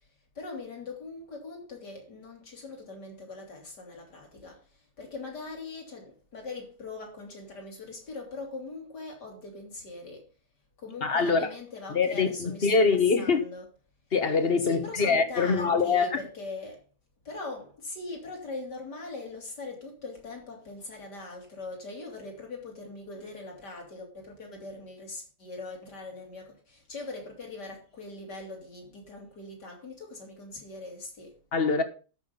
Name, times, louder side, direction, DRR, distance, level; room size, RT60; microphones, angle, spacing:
voice 1, 0.4-4.6 5.0-10.3 10.8-13.6 14.6-16.8 17.3-31.3, left 3 dB, 85° left, 3.9 m, -41 dB
voice 2, 11.0-11.5 11.9-13.4 14.1-16.2 31.5-31.8, left 4 dB, 40° left, 1.4 m, -24 dB
13.0 x 6.2 x 5.4 m
omnidirectional pair, 1.8 m